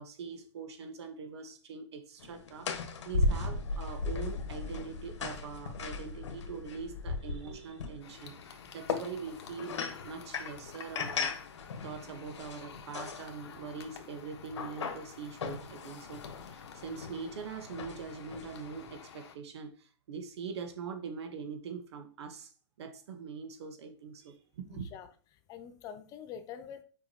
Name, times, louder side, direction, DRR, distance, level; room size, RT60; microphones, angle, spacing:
voice 1, 0.0-2.7 3.0-9.8 10.0-11.4 11.8-22.5 22.8-24.9, right 5 dB, 70° right, 1.3 m, -43 dB
sound 1, 2.2-18.9, left 3 dB, 85° left, 1.3 m, -38 dB
sound 2, 8.0-19.4, left 7 dB, 65° left, 1.3 m, -51 dB
voice 2, 24.6-25.1 25.5-26.8, left 8 dB, 25° left, 0.6 m, -45 dB
7.1 x 4.9 x 3.0 m
hypercardioid pair, 145°, 15 cm